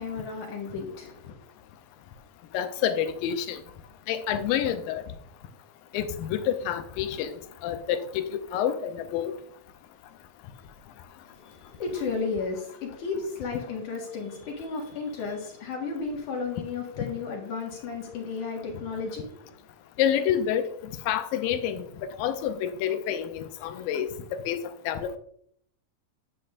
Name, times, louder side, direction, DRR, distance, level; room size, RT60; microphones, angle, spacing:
voice 1, 0.0-1.4 11.3-19.4, left 4 dB, 65° left, 3.0 m, -33 dB
voice 2, 2.5-3.6 4.1-5.0 5.9-7.3 7.6-9.3 20.0-20.7 21.1-21.8 22.2-24.1 24.5-24.6 24.9-25.2, left 9 dB, 80° left, 2.4 m, -28 dB
9.7 x 8.7 x 2.6 m
omnidirectional pair, 4.0 m